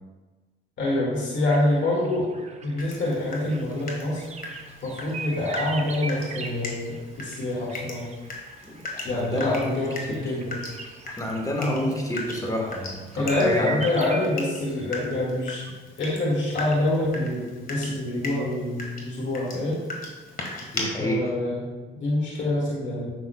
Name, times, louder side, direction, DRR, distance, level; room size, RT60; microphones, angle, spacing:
voice 1, 0.8-2.3 2.6-4.3 4.8-8.1 9.0-10.6 11.6-11.9 13.2-15.6 16.0-19.8 21.0-23.1, left 1 dB, 70° left, -5 dB, 2.1 m, -26 dB
sound 1, 1.2-14.3, right 4 dB, 35° right, 0.8 m, -41 dB
Water tap faucet / Drip, 2.8-20.8, left 2 dB, 45° left, 1.6 m, -39 dB
voice 2, 8.6-10.2 11.2-13.8 20.7-21.3, left 1 dB, 15° left, 1 dB, 1.5 m, -29 dB
9.6 x 6.2 x 2.3 m, 1.3 s
cardioid pair, 90°, 20 cm